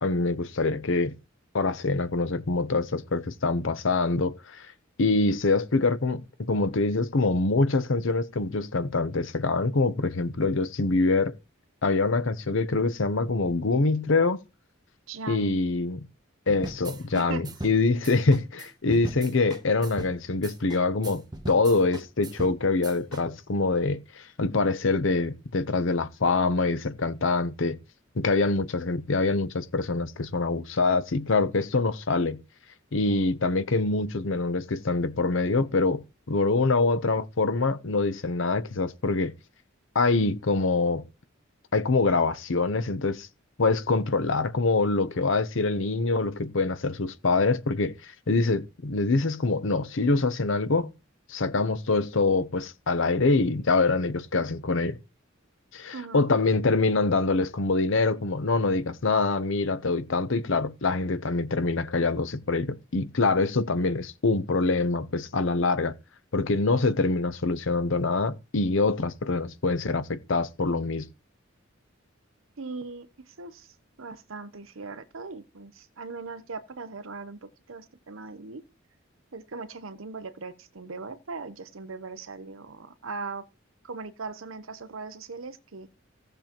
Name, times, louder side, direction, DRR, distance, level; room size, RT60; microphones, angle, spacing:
voice 1, 0.0-1.1 1.5-4.7 5.0-11.3 11.8-14.4 15.3-16.1 16.5-27.8 28.1-32.4 32.9-39.3 39.9-41.0 41.7-43.3 43.6-50.9 51.3-55.0 55.7-65.9 66.3-71.1, left 3 dB, 65° left, 0.8 m, -25 dB
voice 2, 15.1-15.6 17.1-17.5 55.9-56.3 72.6-78.6 79.3-83.4 83.8-85.9, right 4 dB, 75° right, 0.9 m, -39 dB
sound 1, 16.5-23.2, right 1 dB, 20° right, 1.0 m, -39 dB
17.0 x 6.8 x 3.0 m
head